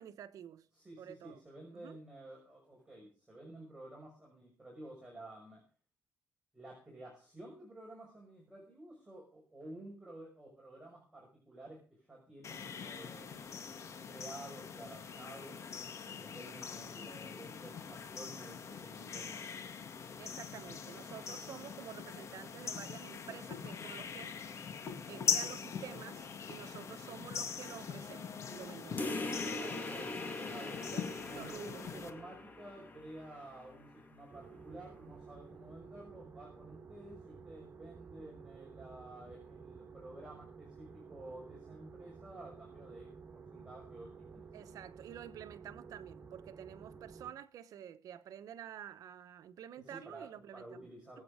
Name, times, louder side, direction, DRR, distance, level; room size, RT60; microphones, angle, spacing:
voice 1, 0.0-0.7 1.0-1.4 1.7-2.0 20.2-24.4 25.1-29.1 29.4-29.8 30.9-32.1 44.5-50.9 51.1-51.2, right 10 dB, 80° right, 1.0 m, -50 dB
voice 2, 0.7-5.6 6.5-11.8 12.1-13.5 14.1-19.4 29.7-44.7 49.8-51.2, right 1 dB, 15° right, 6.1 m, -52 dB
sound 1, 12.4-32.1, left 6 dB, 55° left, 2.0 m, -42 dB
sound 2, 29.0-34.0, left 2 dB, 30° left, 2.7 m, -42 dB
sound 3, 34.3-47.3, right 5 dB, 45° right, 2.9 m, -53 dB
23.5 x 8.3 x 5.0 m
cardioid pair, 105°, 6 cm